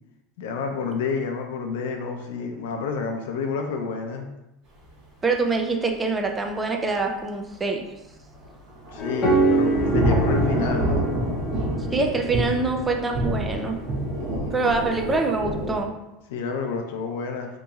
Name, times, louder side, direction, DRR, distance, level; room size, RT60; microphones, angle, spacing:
voice 1, 0.4-4.3 8.9-11.1 14.1-15.0 16.3-17.5, left 5 dB, 80° left, 3 dB, 0.6 m, -29 dB
voice 2, 5.2-7.9 11.9-13.8 14.5-16.0, right 3 dB, 10° right, 3 dB, 0.3 m, -25 dB
Thunder / Rain, 8.4-15.8, equal, 35° right, 0.7 m, -27 dB
sound 1, 9.0-14.0, right 2 dB, 20° left, 0.7 m, -26 dB
3.9 x 2.9 x 2.3 m, 0.93 s
supercardioid pair, 175°, 0 cm